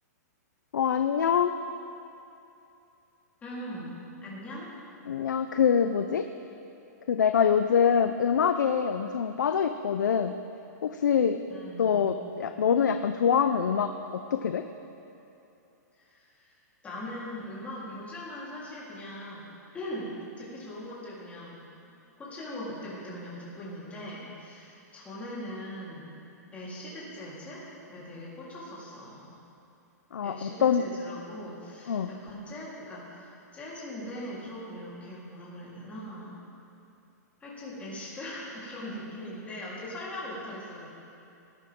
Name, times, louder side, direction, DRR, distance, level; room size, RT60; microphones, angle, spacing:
voice 1, 0.7-1.6 5.1-6.3 7.1-10.4 10.8-11.4 11.8-14.7 30.1-30.8 31.9-32.1, left 7 dB, 90° left, 8 dB, 0.6 m, -25 dB
voice 2, 3.4-4.0 4.2-4.7 11.5-12.3 15.9-16.6 16.8-19.5 19.7-21.6 22.2-26.1 26.5-29.3 30.2-36.4 37.4-40.9, left 1 dB, 15° left, -8 dB, 3.8 m, -40 dB
19.0 x 11.0 x 3.7 m, 2.8 s
hypercardioid pair, 145°, 10 cm